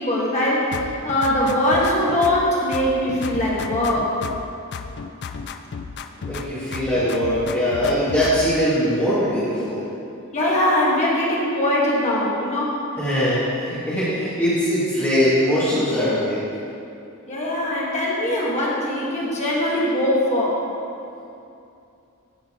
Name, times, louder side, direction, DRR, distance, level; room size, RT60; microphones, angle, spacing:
voice 1, 0.0-4.1 10.3-12.8 17.3-20.6, left 1 dB, 30° left, -6 dB, 1.7 m, -21 dB
sound 1, 0.7-2.5 2.7-4.5 4.7-6.5 6.7-8.6, left 5 dB, 50° left, 0.4 m, -33 dB
voice 2, 6.2-9.9 13.0-16.4, equal, 10° left, -14 dB, 2.0 m, -21 dB
13.0 x 4.5 x 3.8 m, 2.7 s
head